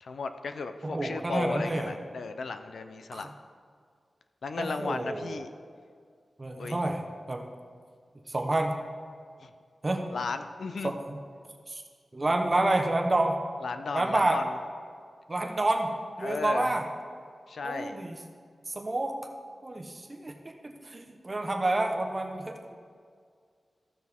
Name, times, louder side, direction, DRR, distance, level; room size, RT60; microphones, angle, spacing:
voice 1, 0.0-3.3 4.4-5.5 6.6-6.8 9.4-9.5 10.1-11.0 13.6-14.5 16.2-16.7 17.5-18.0, left 4 dB, 80° left, 8 dB, 0.5 m, -35 dB
voice 2, 0.8-1.9 3.1-3.3 4.6-5.5 6.4-7.0 7.3-7.5 8.3-8.8 9.8-10.0 10.8-11.2 11.7-11.8 12.1-13.4 13.9-14.4 15.3-15.9 16.2-16.8 17.6-18.2 18.7-19.2 19.6-22.7, right 2 dB, 30° right, 3 dB, 0.9 m, -29 dB
15.0 x 6.3 x 3.6 m, 2.1 s
wide cardioid pair, 120°, 0 cm